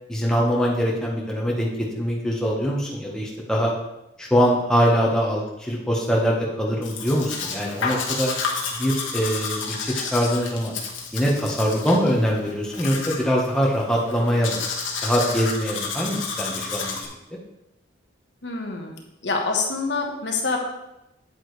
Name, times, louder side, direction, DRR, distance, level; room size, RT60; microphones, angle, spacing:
voice 1, 0.1-3.7 4.2-8.3 8.8-10.7 11.1-14.6 15.0-17.0, equal, 5° left, -3 dB, 1.2 m, -23 dB
Domestic sounds home sounds, 6.8-17.1, left 5 dB, 80° left, 1.6 m, -31 dB
voice 2, 18.4-19.0 19.2-20.6, left 4 dB, 60° left, 1 dB, 1.3 m, -26 dB
9.0 x 8.6 x 3.3 m, 0.90 s
head